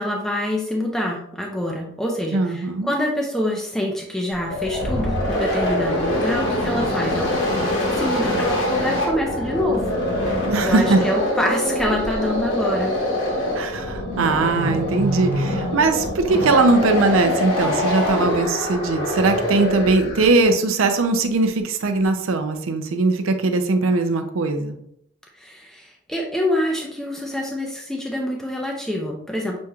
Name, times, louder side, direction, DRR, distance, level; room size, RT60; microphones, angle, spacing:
voice 1, 0.0-7.4 8.0-9.9 10.6-13.0 25.4-29.6, left 1 dB, ahead, 0 dB, 0.4 m, -26 dB
voice 2, 2.3-2.9 10.4-11.0 13.5-24.8, right 3 dB, 65° right, 7 dB, 0.5 m, -20 dB
sound 1, 4.3-20.4, left 1 dB, 55° left, 1.2 m, -24 dB
6.2 x 2.8 x 2.3 m, 0.74 s
head